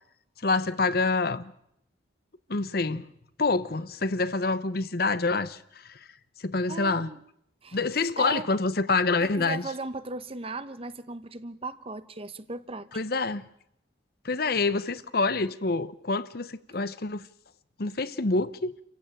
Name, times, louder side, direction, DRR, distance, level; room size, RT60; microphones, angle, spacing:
voice 1, 0.4-1.5 2.5-3.1 3.4-6.0 6.4-7.1 7.7-9.6 12.9-13.5 14.2-17.2 17.8-18.8, left 3 dB, 55° left, 0.9 m, -27 dB
voice 2, 6.7-7.2 7.6-7.8 8.2-8.5 9.2-12.9 16.7-16.8, right 3 dB, 30° right, 1.0 m, -37 dB
28.5 x 15.5 x 9.0 m
head